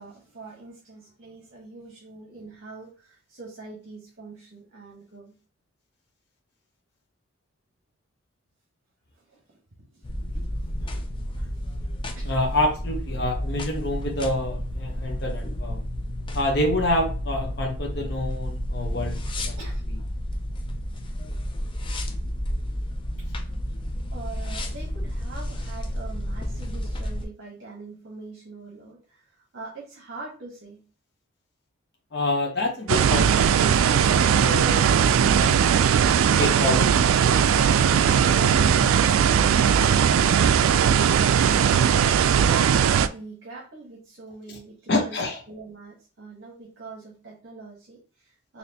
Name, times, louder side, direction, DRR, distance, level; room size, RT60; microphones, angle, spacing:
voice 1, 0.0-5.3 9.2-9.6 9.9-10.0 10.3-10.5 11.7-11.9 12.1-12.3 19.6-19.8 24.1-30.8 41.9-45.2 45.5-48.6, right 3 dB, 55° right, -2 dB, 1.0 m, -43 dB
sound 1, 10.0-27.2, equal, 25° left, 0.4 m, -31 dB
voice 2, 12.2-15.8 16.3-19.6 32.1-35.9 36.3-39.4 39.8-39.9 40.2-40.4 44.5-44.6 44.9-45.4, left 1 dB, 55° left, 0 dB, 0.9 m, -28 dB
sound 2, 32.9-43.1, right 8 dB, 85° right, 0.3 m, -19 dB
4.2 x 2.8 x 2.7 m, 0.38 s
head